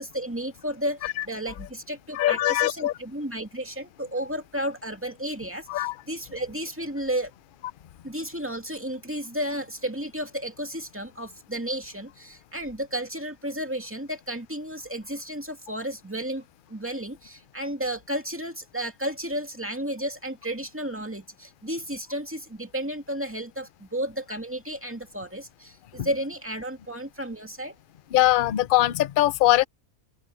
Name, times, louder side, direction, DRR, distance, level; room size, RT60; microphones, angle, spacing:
voice 1, 0.0-7.3 8.0-27.7, right 1 dB, 10° right, 2.3 m, -33 dB
voice 2, 2.1-2.9 5.7-6.0 26.0-26.1 28.1-29.6, left 15 dB, 60° left, 0.5 m, -22 dB
open air
omnidirectional pair, 1.5 m